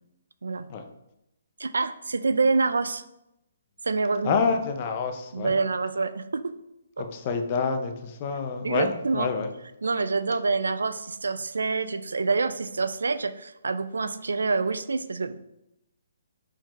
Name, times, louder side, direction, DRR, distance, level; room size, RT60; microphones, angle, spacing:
voice 1, 1.6-3.0 3.8-4.4 5.3-6.5 8.6-9.3 9.8-15.4, right 4 dB, 90° right, 12 dB, 0.3 m, -26 dB
voice 2, 4.2-5.6 7.0-9.5, left 5 dB, 35° left, 5 dB, 0.5 m, -27 dB
4.4 x 3.8 x 3.0 m, 0.86 s
hypercardioid pair, 155°, 0 cm